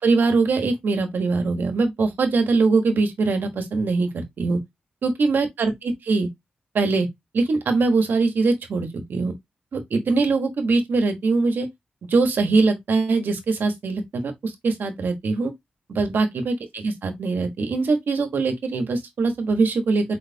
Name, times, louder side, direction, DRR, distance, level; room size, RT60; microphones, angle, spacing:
voice 1, 0.0-4.6 5.0-6.3 6.7-7.1 7.3-9.3 9.7-11.7 12.1-15.5 15.9-20.2, right 3 dB, 80° right, 1.3 m, -22 dB
4.5 x 4.2 x 2.7 m
cardioid pair, 65°, 3 cm